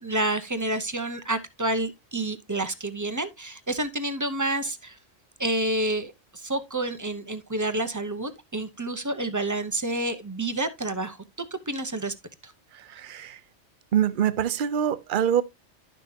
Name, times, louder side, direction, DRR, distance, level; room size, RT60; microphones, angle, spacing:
voice 1, 0.0-5.0 5.4-11.2 11.5-12.1 12.4-12.5, right 2 dB, 20° right, 0.6 m, -29 dB
voice 2, 12.7-13.4 13.9-15.4, right 9 dB, 50° right, 0.7 m, -25 dB
11.5 x 6.0 x 2.7 m
omnidirectional pair, 1.2 m